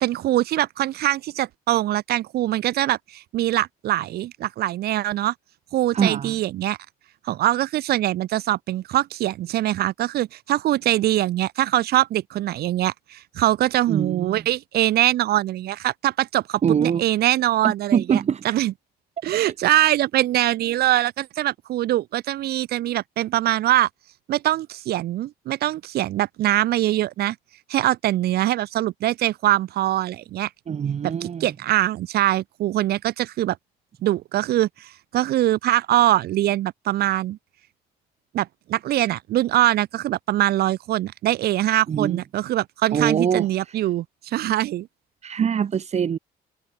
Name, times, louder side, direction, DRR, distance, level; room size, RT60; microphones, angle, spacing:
voice 1, 0.0-5.3 5.7-6.8 7.2-18.7 19.2-23.9 24.3-27.3 27.7-30.5 31.0-33.6 34.0-37.4 38.3-44.9, right 14 dB, 70° right, 1.5 m, -23 dB
voice 2, 5.9-6.4 13.9-14.4 16.6-17.0 17.6-18.5 30.7-31.5 41.9-42.2 42.9-43.5 45.2-46.2, right 7 dB, 40° right, 2.2 m, -23 dB
cardioid pair, 110°, 17 cm